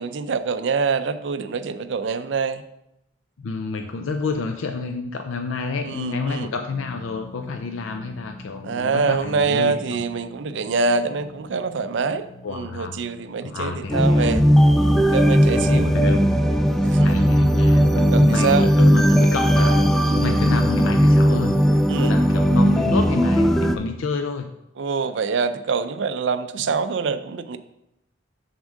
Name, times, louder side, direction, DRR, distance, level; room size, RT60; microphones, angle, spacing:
voice 1, 0.0-2.6 5.8-6.5 8.6-14.4 15.0-15.9 16.8-17.1 17.9-18.7 20.0-20.2 21.9-22.2 24.8-27.6, right 4 dB, 65° right, 11 dB, 0.4 m, -25 dB
voice 2, 3.4-10.0 12.4-13.0 13.4-14.4 15.5-16.4 17.0-19.8 20.1-21.5 22.0-24.5, left 4 dB, 90° left, 6 dB, 0.5 m, -29 dB
sound 1, 6.6-19.0, left 2 dB, 35° left, 1.4 m, -46 dB
sound 2, 13.9-23.8, equal, ahead, 0.3 m, -17 dB
7.1 x 3.6 x 6.4 m, 0.85 s
head